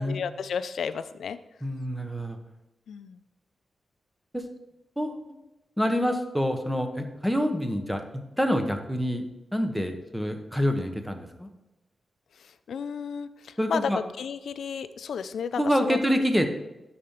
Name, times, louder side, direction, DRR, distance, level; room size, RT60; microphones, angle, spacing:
voice 1, 0.0-1.4 2.9-3.2 12.4-13.9 14.2-16.0, left 6 dB, 90° left, 12 dB, 0.4 m, -33 dB
voice 2, 1.6-2.4 4.3-4.4 5.0-5.3 5.8-9.3 9.5-11.5 13.6-14.0 15.5-16.5, equal, 5° right, 6 dB, 0.9 m, -27 dB
12.5 x 4.3 x 3.7 m, 0.99 s
cardioid pair, 90°, 0 cm